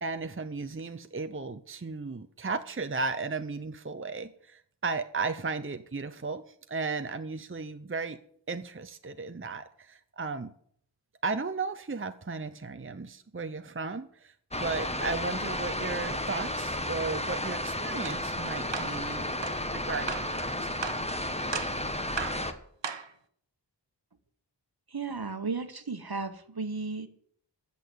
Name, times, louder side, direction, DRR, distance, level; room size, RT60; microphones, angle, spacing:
voice 1, 0.0-8.2 8.5-10.5 11.2-19.3 19.7-20.5, right 4 dB, 30° right, 8 dB, 0.7 m, -35 dB
sound 1, 14.5-22.5, left 1 dB, 15° left, 1.4 m, -33 dB
sound 2, 18.0-18.2 18.7-19.0 19.4-19.6 20.1-20.3 20.8-21.1 21.5-21.8 22.2-22.4 22.8-23.1, right 5 dB, 75° right, 1.2 m, -35 dB
voice 2, 24.9-27.1, right 4 dB, 55° right, 10 dB, 1.3 m, -34 dB
14.5 x 6.9 x 9.5 m, 0.63 s
wide cardioid pair, 45°, 44 cm